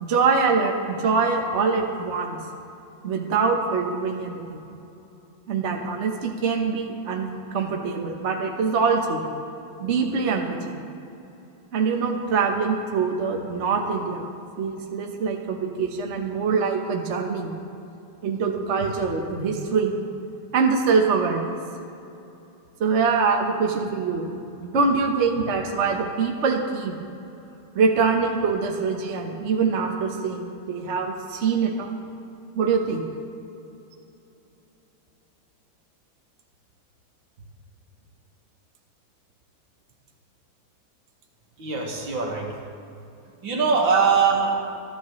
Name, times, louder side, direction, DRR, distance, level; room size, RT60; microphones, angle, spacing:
voice 1, 0.0-2.4 3.0-4.6 5.5-9.2 9.8-10.8 11.7-14.3 14.6-17.5 18.2-19.9 20.5-21.5 22.8-26.9 27.7-31.9 32.5-33.1, right 5 dB, 40° right, 2 dB, 1.2 m, -24 dB
voice 2, 41.6-42.6 43.4-44.6, right 5 dB, 70° right, 0 dB, 2.4 m, -22 dB
26.0 x 11.0 x 3.2 m, 2.8 s
omnidirectional pair, 2.2 m